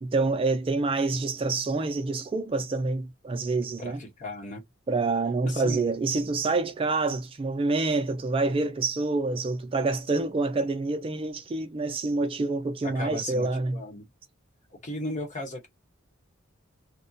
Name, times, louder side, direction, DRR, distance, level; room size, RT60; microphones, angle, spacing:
voice 1, 0.0-4.0 4.9-13.8, right 3 dB, 25° right, 0.3 m, -27 dB
voice 2, 3.8-4.6 5.4-5.9 12.8-14.1 14.7-15.7, left 1 dB, 40° left, 0.9 m, -36 dB
2.2 x 2.1 x 2.6 m
head